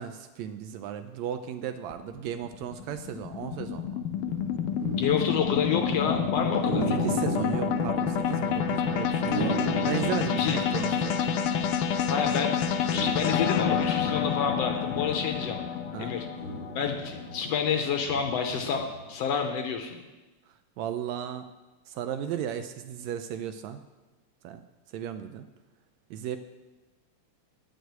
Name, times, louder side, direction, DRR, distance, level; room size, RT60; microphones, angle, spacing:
voice 1, 0.0-4.0 6.9-11.2 15.9-16.1 20.8-21.5 21.9-23.8 24.4-24.6 24.9-25.5 26.1-26.4, right 9 dB, 80° right, 9 dB, 1.7 m, -35 dB
sound 1, 1.9-18.3, left 7 dB, 90° left, 2.2 m, -29 dB
sound 2, 4.1-12.3 12.6-19.3, right 2 dB, 30° right, 1.2 m, -37 dB
voice 2, 4.9-7.0 10.4-10.6 12.1-12.6 12.9-15.6 16.0-16.3 16.7-20.0, left 7 dB, 70° left, 4 dB, 1.7 m, -29 dB
10.0 x 6.3 x 8.0 m, 1.2 s
omnidirectional pair, 3.4 m